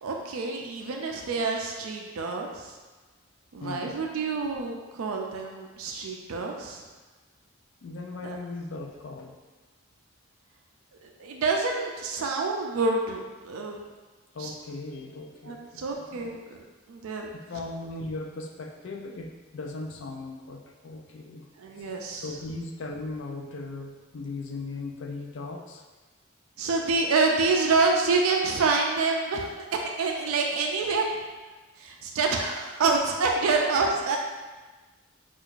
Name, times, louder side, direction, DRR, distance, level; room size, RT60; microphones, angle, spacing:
voice 1, 0.0-2.7 3.5-6.8 8.2-8.4 11.0-13.8 14.4-14.5 15.4-16.6 16.9-17.3 21.6-22.4 26.6-31.1 31.8-34.2, right 4 dB, 80° right, 1 dB, 0.4 m, -27 dB
voice 2, 3.6-4.0 7.8-9.4 14.3-16.3 17.3-21.4 21.8-25.8, left 3 dB, 60° left, 2 dB, 0.4 m, -38 dB
4.6 x 2.4 x 2.4 m, 1.3 s
head